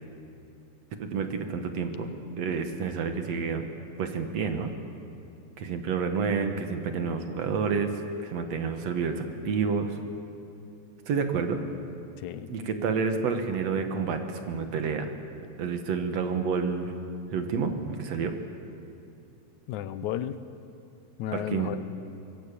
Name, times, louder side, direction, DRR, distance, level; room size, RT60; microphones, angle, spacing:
voice 1, 1.0-2.1 2.4-3.7 4.0-4.7 5.6-8.0 8.2-10.0 11.1-11.6 12.5-15.1 15.6-16.9 17.3-18.4 21.3-21.7, right 5 dB, 65° right, 6 dB, 2.6 m, -29 dB
voice 2, 12.2-12.5 19.7-20.4 21.2-21.8, left 11 dB, 80° left, 12 dB, 2.3 m, -33 dB
24.5 x 20.5 x 8.5 m, 2.6 s
omnidirectional pair, 3.4 m